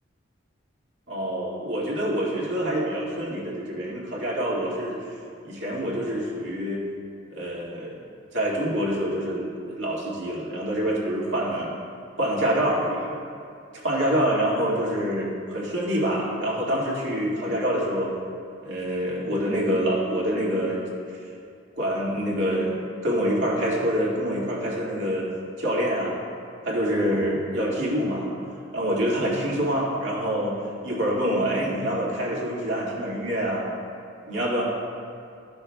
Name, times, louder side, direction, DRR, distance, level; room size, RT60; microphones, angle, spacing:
voice 1, 1.1-5.0 5.4-6.8 7.3-7.9 8.3-11.7 12.2-13.1 13.8-18.1 18.6-20.8 21.8-22.7 23.0-25.3 25.6-26.2 26.6-28.3 28.7-30.6 30.8-33.6 34.3-34.6, equal, 75° right, -6 dB, 1.9 m, -26 dB
13.0 x 6.2 x 2.2 m, 2.5 s
head